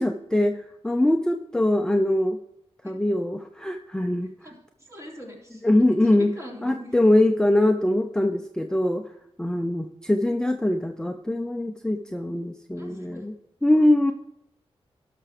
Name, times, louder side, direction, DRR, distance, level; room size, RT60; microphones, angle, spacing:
voice 1, 0.0-2.4 2.8-4.3 5.6-6.3 6.6-9.1 9.4-13.3 13.6-14.1, left 1 dB, 5° left, 5 dB, 0.6 m, -22 dB
voice 2, 4.4-6.9 10.2-10.4 12.8-13.3, equal, 30° right, -2 dB, 3.5 m, -42 dB
12.0 x 6.0 x 5.0 m, 0.81 s
cardioid pair, 60°, 11 cm